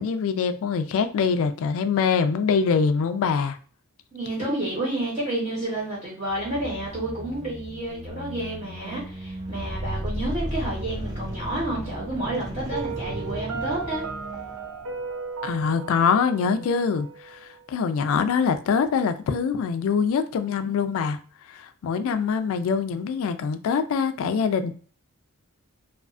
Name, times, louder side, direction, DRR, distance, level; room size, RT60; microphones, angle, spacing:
voice 1, 0.0-3.6 15.4-17.4 17.7-21.2 21.5-24.7, left 6 dB, 65° left, 0.3 m, -24 dB
voice 2, 4.1-14.0, right 1 dB, 35° right, 0.9 m, -30 dB
sound 1, 6.3-15.1, equal, 20° right, 0.5 m, -35 dB
Piano, 12.7-17.7, right 5 dB, 80° right, 0.5 m, -36 dB
2.4 x 2.3 x 2.4 m
head